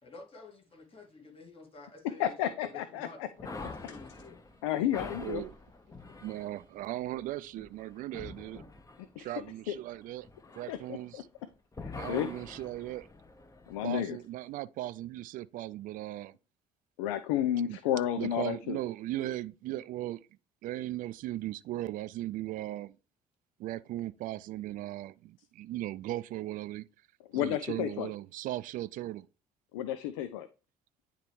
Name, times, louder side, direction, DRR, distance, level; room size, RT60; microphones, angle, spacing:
voice 1, 0.0-2.3 2.9-3.2 3.6-4.4 4.7-4.8 8.1-8.2, left 3 dB, 35° left, 2.1 m, -50 dB
voice 2, 2.2-3.3 4.6-5.4 9.2-9.3 9.7-9.8 10.7-11.2 11.8-12.3 13.7-14.2 17.0-18.8 27.3-28.1 29.7-30.5, left 11 dB, 80° left, 0.4 m, -32 dB
sound 1, 3.4-11.4 11.7-14.1, left 3 dB, 20° left, 1.0 m, -46 dB
voice 3, 5.2-5.5 6.2-8.6 9.2-10.3 10.6-11.3 11.9-13.1 13.8-16.4 17.7-17.8 18.2-20.3 20.6-23.0 23.6-26.9 27.3-29.3, right 15 dB, 60° right, 0.4 m, -37 dB
9.8 x 3.3 x 3.1 m
hypercardioid pair, 55°, 16 cm